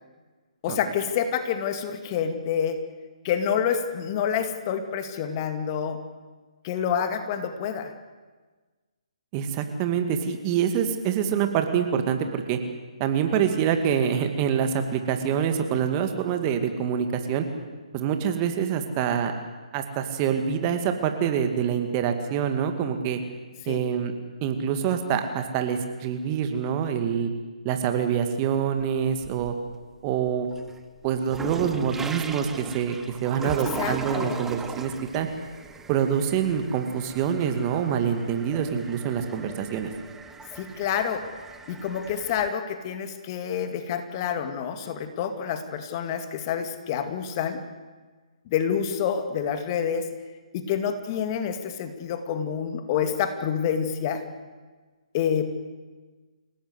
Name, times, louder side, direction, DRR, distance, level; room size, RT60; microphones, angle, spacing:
voice 1, 0.6-2.8 3.2-6.0 6.6-7.9 23.6-23.8 33.4-33.5 33.8-34.4 40.6-41.3 41.7-47.6 48.5-50.1 50.5-54.2 55.1-55.5, left 8 dB, 30° left, 8 dB, 2.2 m, -28 dB
voice 2, 9.3-12.6 13.0-17.5 17.9-19.3 19.7-23.2 23.7-24.1 24.4-27.3 27.6-29.5 30.0-30.5 31.0-33.0 33.2-35.3 35.9-39.9, right 8 dB, 25° right, 7 dB, 2.4 m, -26 dB
sound 1, 28.8-29.7 30.2-42.5, right 4 dB, 10° right, 1.4 m, -39 dB
28.5 x 17.5 x 8.2 m, 1.3 s
figure-of-eight pair, 135°, 4 cm